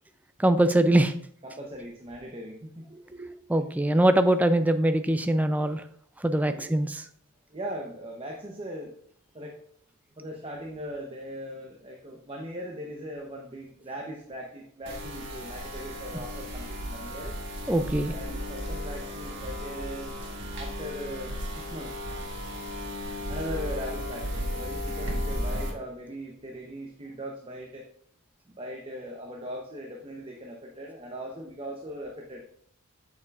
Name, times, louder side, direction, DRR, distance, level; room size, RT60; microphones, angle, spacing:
voice 1, 0.4-1.1 3.5-5.8 6.2-7.0 17.7-18.2, right 1 dB, 5° right, 8 dB, 0.3 m, -22 dB
voice 2, 1.4-3.3 6.5-6.8 7.5-8.9 9.3-9.6 10.2-17.3 18.1-20.2 20.5-21.9 23.3-27.8 28.5-32.4, equal, 25° right, 0 dB, 0.7 m, -39 dB
sound 1, 14.9-25.7, equal, 55° right, 1.5 m, -34 dB
8.4 x 6.9 x 2.4 m, 0.64 s
head